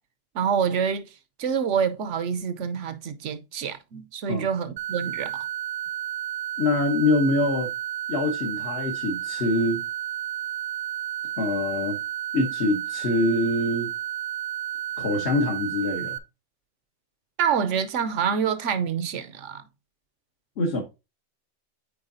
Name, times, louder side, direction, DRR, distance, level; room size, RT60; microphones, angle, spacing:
voice 1, 0.3-1.1 1.4-5.5 17.4-19.6, right 7 dB, 75° right, 1.0 m, -27 dB
sound 1, 4.8-16.2, right 11 dB, 55° right, 0.6 m, -32 dB
voice 2, 6.6-7.7 8.1-9.8 11.4-12.0 12.3-13.9 15.0-16.2 20.6-20.8, left 2 dB, 60° left, 1.4 m, -24 dB
8.7 x 4.6 x 2.6 m
omnidirectional pair, 1.3 m